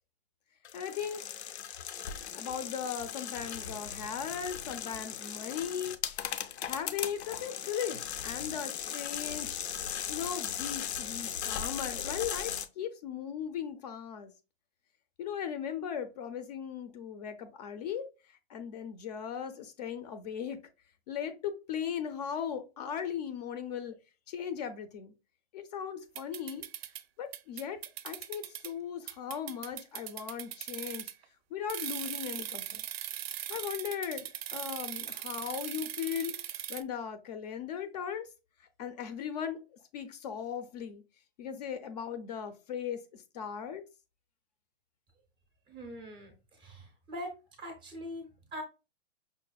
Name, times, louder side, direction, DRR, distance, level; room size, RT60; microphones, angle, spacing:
sound 1, 0.7-12.7, left 9 dB, 90° left, 0.6 m, -38 dB
voice 1, 0.7-1.2 2.3-6.2 6.6-9.6 10.1-14.3 15.2-18.1 18.5-20.6 21.1-24.0 24.3-25.1 25.5-26.6 27.2-27.8 28.0-31.1 31.5-32.8 33.5-38.3 38.8-39.6 39.9-41.0 41.4-43.8, left 8 dB, 40° left, 0.5 m, -38 dB
sound 2, 26.1-27.0 27.3-28.7 29.1-31.2 31.7-36.8, right 12 dB, 70° right, 0.5 m, -40 dB
voice 2, 45.7-47.3 47.6-48.6, equal, 15° right, 0.5 m, -43 dB
5.7 x 2.1 x 2.3 m
hypercardioid pair, 150°, 32 cm